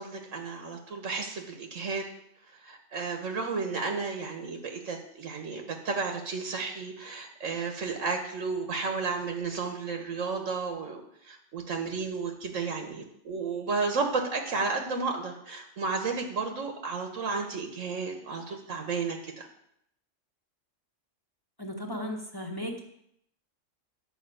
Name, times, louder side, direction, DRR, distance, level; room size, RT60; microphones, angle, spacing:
voice 1, 0.0-2.1 2.6-11.0 11.3-19.5, right 4 dB, 85° right, 4 dB, 1.6 m, -32 dB
voice 2, 21.6-22.9, equal, 20° left, -1 dB, 1.4 m, -36 dB
11.0 x 5.1 x 7.9 m, 0.74 s
omnidirectional pair, 1.3 m